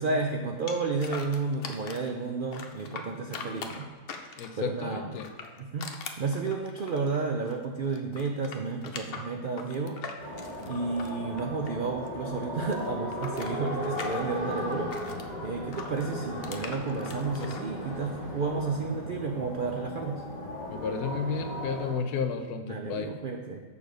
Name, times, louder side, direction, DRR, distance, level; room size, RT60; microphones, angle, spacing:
voice 1, 0.0-3.9 4.6-5.1 5.6-5.9 6.2-10.4 10.7-20.2 22.6-23.6, right 4 dB, 75° right, 3 dB, 0.4 m, -32 dB
sound 1, 0.7-2.1 2.5-4.7 5.1-7.6 7.9-12.1 12.3-15.3 15.7-17.6, left 5 dB, 55° left, 0.7 m, -42 dB
voice 2, 4.4-5.3 20.7-23.1, left 5 dB, 75° left, 7 dB, 1.2 m, -32 dB
sound 2, 10.2-21.9, equal, 30° left, 1.6 m, -37 dB
7.0 x 6.6 x 5.1 m, 1.5 s
omnidirectional pair, 1.7 m